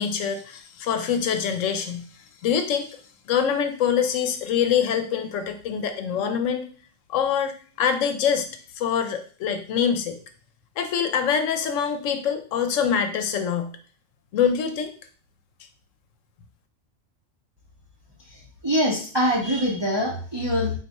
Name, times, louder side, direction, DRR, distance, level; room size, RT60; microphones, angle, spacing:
voice 1, 0.0-2.0 2.4-2.9 3.3-6.7 7.1-7.5 7.8-8.5 8.8-10.2 10.8-13.7 14.3-14.9, left 7 dB, 75° left, 7 dB, 0.9 m, -24 dB
voice 2, 18.6-20.7, equal, 35° right, -2 dB, 0.4 m, -23 dB
3.9 x 2.3 x 4.0 m, 0.43 s
omnidirectional pair, 1.3 m